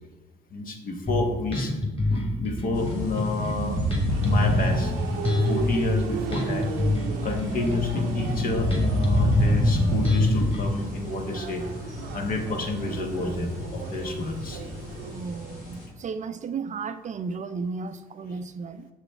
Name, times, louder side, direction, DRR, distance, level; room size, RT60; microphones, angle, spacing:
voice 1, 0.5-1.7 2.1-3.8 4.2-4.9 5.5-6.7 7.2-11.6 12.1-14.6, left 3 dB, 50° left, 4 dB, 1.5 m, -29 dB
Bass guitar, 1.1-10.7, left 2 dB, 30° left, 2.9 m, -27 dB
sound 1, 2.7-15.9, left 1 dB, 90° left, 2.1 m, -29 dB
sound 2, 4.1-15.2, right 7 dB, 75° right, 0.7 m, -37 dB
voice 2, 15.0-18.9, right 5 dB, 40° right, 11 dB, 0.5 m, -34 dB
6.8 x 6.8 x 4.5 m, 1.1 s
hypercardioid pair, 55°, 19 cm